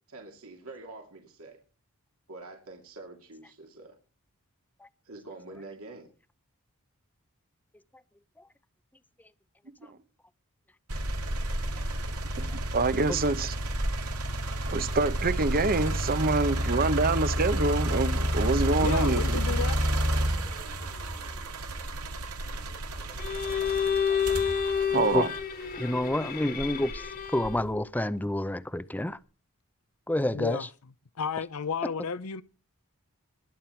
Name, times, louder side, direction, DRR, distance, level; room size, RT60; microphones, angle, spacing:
voice 1, 0.1-1.6 2.3-4.0 5.0-6.1, right 2 dB, 70° right, 2.6 m, -46 dB
sound 1, 10.9-25.9 26.5-27.7, right 1 dB, 85° right, 2.4 m, -30 dB
voice 2, 12.4-13.6 14.7-19.4 24.9-25.3, right 3 dB, 40° right, 0.9 m, -26 dB
voice 3, 18.8-19.8 28.2-28.3 30.3-32.4, left 6 dB, 75° left, 0.7 m, -33 dB
Bowed string instrument, 23.2-27.7, left 7 dB, 40° left, 1.7 m, -29 dB
voice 4, 25.8-26.9 27.3-29.2 30.1-30.6, left 1 dB, 10° left, 0.6 m, -28 dB
21.0 x 8.7 x 4.6 m
head